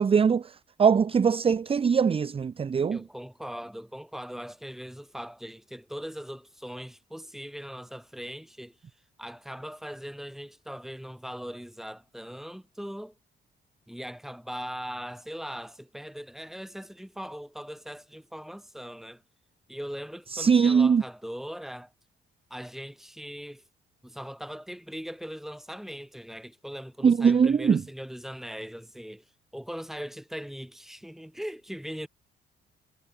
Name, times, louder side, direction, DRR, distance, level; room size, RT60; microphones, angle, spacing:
voice 1, 0.0-3.0 20.3-21.0 27.0-27.8, right 6 dB, 30° right, 0.5 m, -22 dB
voice 2, 2.9-8.8 9.2-13.1 13.9-19.2 19.7-21.9 22.5-23.6 24.0-29.2 29.5-32.1, equal, ahead, 3.8 m, -40 dB
cardioid pair, 90°, 20 cm